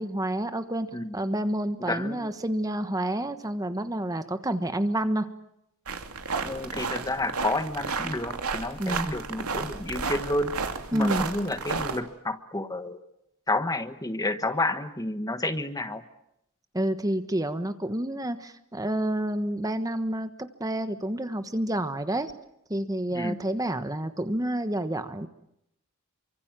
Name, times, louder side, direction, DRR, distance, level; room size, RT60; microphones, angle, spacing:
voice 1, 0.0-0.9 1.1-5.3 8.8-9.1 10.9-11.3 16.7-22.3 22.7-25.3, right 1 dB, 15° right, 10 dB, 1.3 m, -29 dB
voice 2, 1.9-2.3 6.4-10.5 10.9-13.0 13.5-16.0 23.1-23.4, left 2 dB, 15° left, 10 dB, 1.3 m, -30 dB
sound 1, 5.9-12.0, right 4 dB, 80° right, 2.8 m, -32 dB
28.5 x 24.5 x 7.6 m, 0.80 s
head